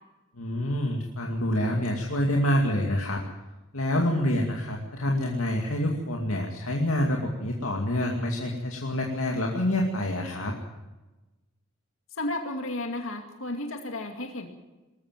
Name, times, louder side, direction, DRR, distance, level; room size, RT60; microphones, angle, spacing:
voice 1, 0.4-3.2 3.7-10.5, left 1 dB, 90° left, 0 dB, 2.4 m, -27 dB
voice 2, 12.2-14.5, left 2 dB, 70° left, 4 dB, 2.3 m, -33 dB
21.0 x 13.5 x 9.1 m, 1.1 s
head